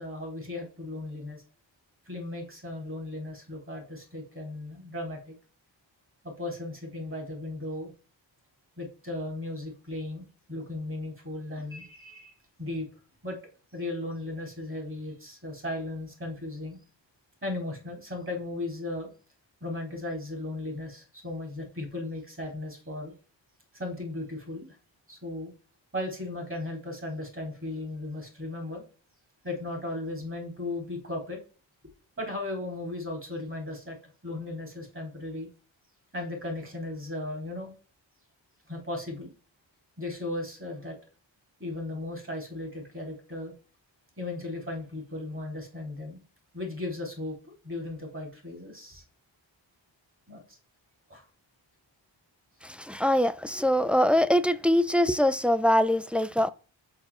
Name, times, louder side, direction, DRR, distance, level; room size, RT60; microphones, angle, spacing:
voice 1, 0.0-1.4 2.1-5.3 6.2-7.9 8.8-12.3 12.6-12.9 13.2-13.4 13.7-16.8 17.4-19.1 19.6-23.1 23.7-24.8 25.1-25.5 25.9-28.8 29.4-31.4 32.2-34.0 34.2-35.5 36.1-37.7 38.7-39.3 40.0-41.0 41.6-43.5 44.2-46.2 46.5-49.0 50.3-50.6 51.1-51.2, left 2 dB, 25° right, 4.1 m, -36 dB
voice 2, 52.6-56.5, equal, 5° right, 0.4 m, -23 dB
6.0 x 4.5 x 4.9 m
cardioid pair, 50°, 47 cm